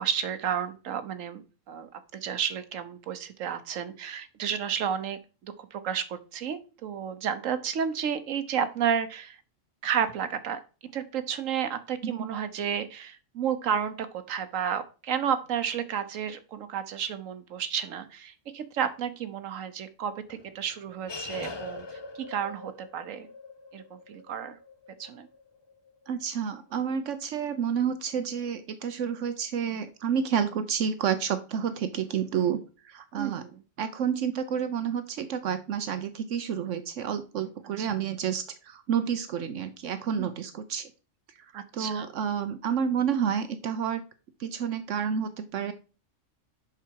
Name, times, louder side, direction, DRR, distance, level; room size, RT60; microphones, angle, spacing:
voice 1, 0.0-9.4 9.8-10.6 10.9-21.9 22.1-23.3 23.7-24.6 25.0-25.3 33.1-33.6 37.8-37.9 40.2-40.3 41.5-42.1, right 8 dB, 90° right, 12 dB, 1.2 m, -32 dB
sound 1, 20.3-27.1, left 3 dB, 25° left, 0.6 m, -44 dB
voice 2, 26.1-32.6 32.8-33.4 33.8-40.9 41.4-44.0 44.4-45.7, right 7 dB, 70° right, 11 dB, 1.0 m, -30 dB
7.3 x 5.9 x 4.5 m, 0.34 s
omnidirectional pair, 1.3 m